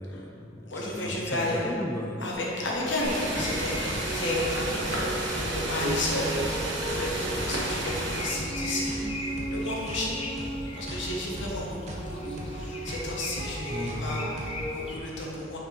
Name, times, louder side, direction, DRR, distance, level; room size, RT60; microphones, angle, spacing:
voice 1, 0.0-2.3 3.5-3.6 13.7-14.3, left 1 dB, 15° left, 3 dB, 0.3 m, -35 dB
voice 2, 0.7-1.6 2.2-15.6, left 1 dB, 70° left, -4 dB, 1.1 m, -33 dB
sound 1, 2.4-15.0, left 2 dB, 30° left, 0.8 m, -41 dB
sound 2, 3.0-8.3, right 1 dB, 75° right, 1.3 m, -32 dB
sound 3, 3.3-14.7, right 1 dB, 35° right, 0.7 m, -35 dB
6.1 x 4.4 x 5.1 m, 3.0 s
head